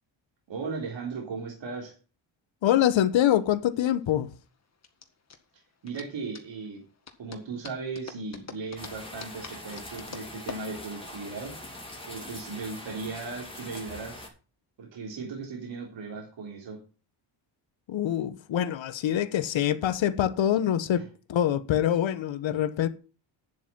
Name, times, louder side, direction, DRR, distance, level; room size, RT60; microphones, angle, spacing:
voice 1, 0.5-1.9 5.8-6.8 7.2-11.5 12.1-14.3 14.8-16.8 21.0-21.1, right 4 dB, 65° right, 3.6 m, -37 dB
voice 2, 2.6-4.3 17.9-21.0 21.3-22.9, left 11 dB, 70° left, 1.1 m, -25 dB
sound 1, 3.1-11.9, left 5 dB, 35° left, 1.8 m, -46 dB
sound 2, 8.8-14.3, left 1 dB, 10° left, 3.1 m, -43 dB
9.8 x 7.6 x 5.9 m
cardioid pair, 130°, 48 cm